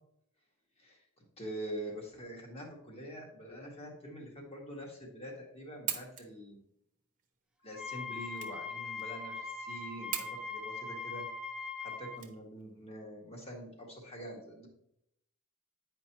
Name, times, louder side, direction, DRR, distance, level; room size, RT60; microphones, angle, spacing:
voice 1, 1.4-6.6 7.6-11.2 11.8-14.7, equal, 30° left, 0 dB, 1.7 m, -45 dB
sound 1, 5.5-12.9, right 9 dB, 40° right, 1.1 m, -43 dB
Wind instrument woodwind instrument, 7.7-12.2, left 4 dB, 5° right, 0.5 m, -41 dB
9.6 x 5.2 x 3.0 m, 0.77 s
head